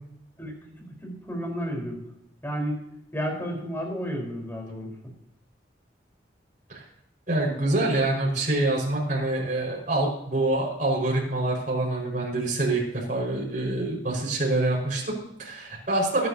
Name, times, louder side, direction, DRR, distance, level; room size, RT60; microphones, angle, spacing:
voice 1, 1.0-2.0 2.4-2.8 3.1-4.9, equal, 10° left, 0 dB, 4.3 m, -31 dB
voice 2, 7.3-16.3, right 2 dB, 45° right, -2 dB, 5.3 m, -26 dB
22.0 x 10.0 x 2.8 m, 0.82 s
head